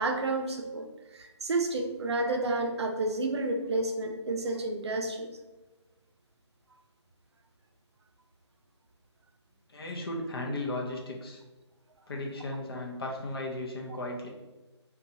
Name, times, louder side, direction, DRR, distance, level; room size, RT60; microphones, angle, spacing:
voice 1, 0.0-5.3, right 2 dB, 65° right, 4 dB, 0.4 m, -30 dB
voice 2, 9.7-11.4 12.1-14.3, left 2 dB, 55° left, 0 dB, 0.6 m, -35 dB
2.7 x 2.3 x 2.5 m, 1.1 s
hypercardioid pair, 165°, 15 cm